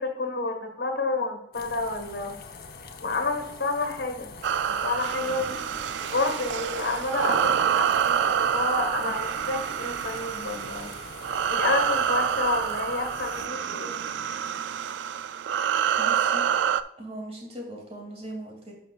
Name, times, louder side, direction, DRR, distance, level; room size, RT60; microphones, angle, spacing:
voice 1, 0.0-2.4 3.0-4.3 4.7-5.6 6.1-10.9 11.5-14.0, left 3 dB, 80° left, 5 dB, 1.6 m, -29 dB
sound 1, 1.5-13.5, left 4 dB, 55° left, 0.8 m, -44 dB
sound 2, 4.4-16.8, right 8 dB, 70° right, 0.3 m, -27 dB
voice 2, 16.0-16.4 17.0-18.7, right 1 dB, 35° right, 0 dB, 2.6 m, -39 dB
11.0 x 5.7 x 2.4 m, 0.83 s
head